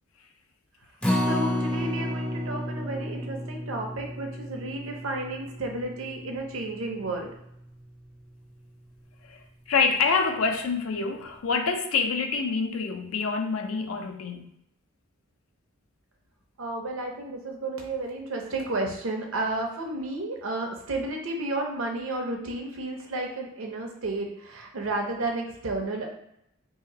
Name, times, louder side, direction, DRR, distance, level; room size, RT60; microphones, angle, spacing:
Acoustic guitar, 1.0-7.3 7.7-7.8 8.2-8.3, left 1 dB, 5° left, 0.4 m, -31 dB
voice 1, 1.3-7.3 16.6-26.1, right 2 dB, 75° right, 0.7 m, -32 dB
voice 2, 9.2-14.5, left 5 dB, 85° left, 0.5 m, -26 dB
2.9 x 2.9 x 3.8 m
head